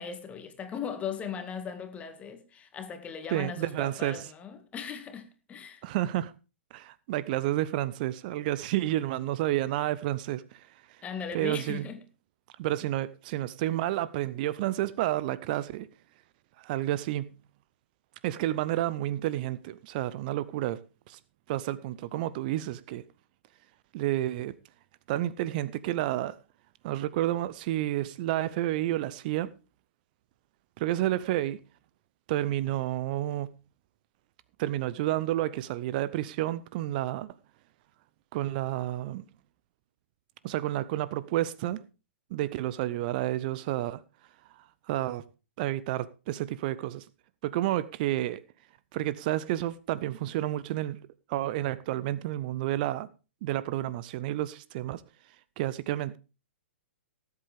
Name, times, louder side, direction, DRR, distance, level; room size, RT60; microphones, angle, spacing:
voice 1, 0.0-5.8 11.0-12.0, left 7 dB, 20° left, 2.0 m, -38 dB
voice 2, 3.3-4.3 5.8-6.3 6.7-11.0 11.3-11.8 12.6-15.9 16.6-17.3 18.2-20.8 21.1-21.2 21.5-23.0 23.9-24.5 25.1-26.4 26.8-29.5 30.8-31.6 32.3-33.5 34.6-37.3 38.3-39.3 40.4-41.8 42.3-44.0 44.5-45.2 45.6-47.1 47.4-48.4 48.9-51.0 51.3-53.1 53.4-55.0 55.6-56.2, right 14 dB, 45° right, 0.6 m, -30 dB
18.5 x 8.1 x 3.5 m
hypercardioid pair, 120°, 7 cm